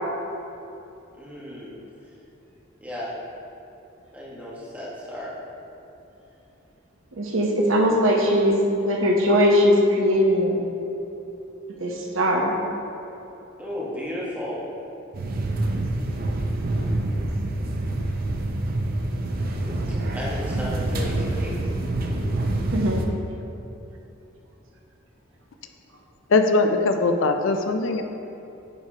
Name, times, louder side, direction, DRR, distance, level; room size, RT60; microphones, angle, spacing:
voice 1, 1.2-1.8 2.8-3.1 4.1-5.4 13.6-14.7 19.9-21.5, left 1 dB, 10° right, -7 dB, 1.2 m, -34 dB
voice 2, 7.2-10.6 11.8-12.5 22.7-23.0, equal, 80° right, 0 dB, 0.9 m, -20 dB
sound 1, 15.1-23.1, right 1 dB, 45° right, 0.5 m, -26 dB
voice 3, 26.3-28.0, left 3 dB, 75° left, 6 dB, 0.4 m, -20 dB
9.4 x 4.6 x 2.8 m, 2.9 s
head